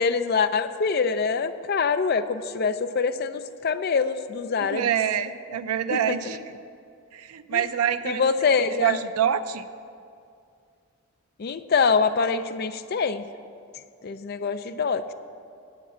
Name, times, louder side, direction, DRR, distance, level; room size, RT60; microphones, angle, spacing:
voice 1, 0.0-4.9 6.1-6.2 7.5-7.6 8.0-9.0 11.4-13.2 14.0-15.1, left 5 dB, 45° left, 10 dB, 0.4 m, -24 dB
voice 2, 4.6-6.4 7.1-9.7, right 9 dB, 90° right, 11 dB, 0.5 m, -26 dB
8.2 x 7.3 x 8.0 m, 2.4 s
head